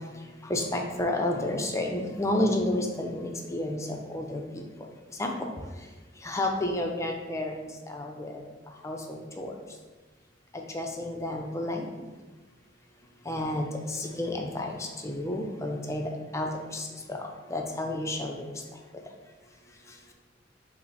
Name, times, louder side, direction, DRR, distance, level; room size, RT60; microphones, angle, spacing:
voice 1, 0.5-4.6 5.2-5.5 6.2-7.6 7.9-8.3 8.8-9.5 10.5-11.8 13.3-17.2 17.5-18.5, left 1 dB, 15° left, 2 dB, 0.4 m, -31 dB
5.5 x 2.1 x 4.1 m, 1.3 s
head